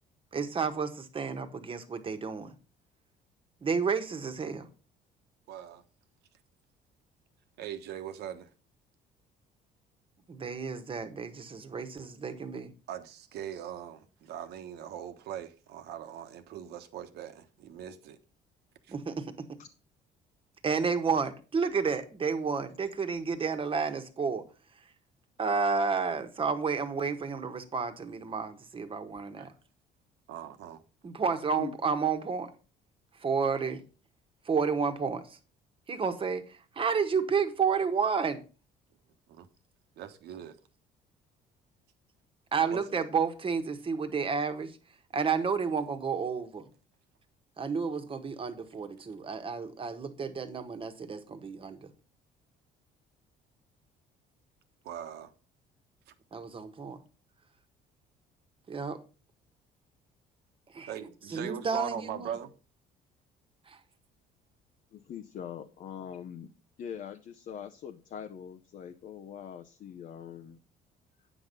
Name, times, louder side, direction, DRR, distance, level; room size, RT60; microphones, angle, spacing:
voice 1, 0.3-2.5 3.6-4.7 10.3-12.7 18.9-19.3 20.6-24.4 25.4-29.5 31.0-32.5 33.2-33.8 34.4-35.4 35.9-38.4 42.5-44.7 45.1-46.7 47.6-51.9 56.3-57.0 58.7-59.0 60.7-60.9 61.3-62.3 63.7-63.8, right 5 dB, 30° right, 1.3 m, -31 dB
voice 2, 5.5-5.8 7.6-8.5 12.9-18.2 18.8-18.9 29.4-29.5 30.3-30.8 39.3-39.5 40.0-40.6 42.7-42.8 54.8-55.3 56.1-56.2 60.9-62.5, right 10 dB, 75° right, 1.2 m, -40 dB
voice 3, 64.9-66.5 66.8-70.6, left 8 dB, 55° left, 0.8 m, -42 dB
9.1 x 6.0 x 5.3 m
cardioid pair, 110°, 17 cm